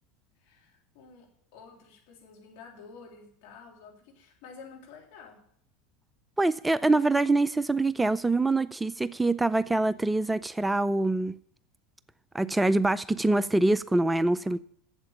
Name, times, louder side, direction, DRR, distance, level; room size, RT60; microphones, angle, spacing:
voice 1, 0.4-5.4, left 5 dB, 60° left, 3.3 m, -50 dB
voice 2, 6.4-11.4 12.3-14.6, right 2 dB, 10° right, 0.3 m, -25 dB
8.1 x 7.5 x 8.5 m
hypercardioid pair, 80°, 0 cm